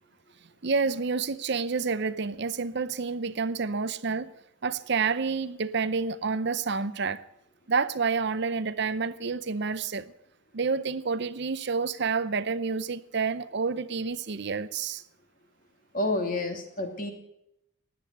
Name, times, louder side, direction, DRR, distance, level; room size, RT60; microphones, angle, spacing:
voice 1, 0.6-4.3 4.6-7.2 7.7-10.1 10.5-15.0, right 5 dB, 55° right, 0.6 m, -29 dB
voice 2, 15.9-17.1, left 2 dB, 40° left, 2.6 m, -29 dB
17.0 x 10.5 x 8.0 m
head